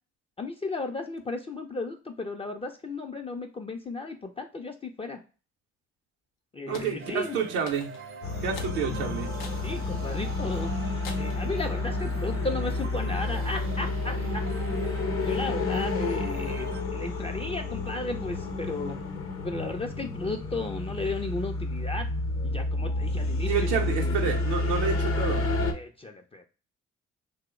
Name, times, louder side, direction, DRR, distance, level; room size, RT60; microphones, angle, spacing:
voice 1, 0.4-5.2 6.5-7.4 8.8-8.9 9.6-10.7 11.2-14.4 15.3-19.0 19.4-22.1 22.4-24.2 25.7-26.4, left 3 dB, 20° left, 3 dB, 0.4 m, -34 dB
sound 1, 6.7-7.0 7.7-8.1 8.6-8.8 9.4-9.7 10.2-10.3 11.0-11.4, left 5 dB, 85° left, 0.6 m, -43 dB
voice 2, 6.7-7.9 8.4-9.3 23.5-25.5, right 6 dB, 90° right, 1 dB, 0.6 m, -29 dB
sound 2, 7.0-16.8, right 6 dB, 45° right, 0.5 m, -43 dB
sound 3, 8.2-25.7, left 2 dB, 50° left, 0.7 m, -30 dB
2.9 x 2.0 x 3.5 m, 0.35 s
hypercardioid pair, 50°, 29 cm